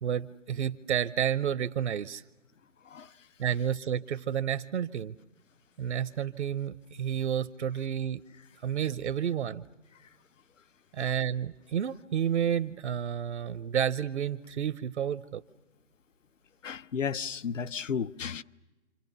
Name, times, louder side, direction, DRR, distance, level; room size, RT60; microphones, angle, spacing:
voice 1, 0.0-2.2 3.4-5.1 5.8-8.2 8.6-9.6 10.9-15.4, right 9 dB, 60° right, 0.8 m, -30 dB
voice 2, 16.6-18.4, left 7 dB, 80° left, 0.9 m, -34 dB
27.5 x 26.0 x 6.8 m
hypercardioid pair, 145°, 37 cm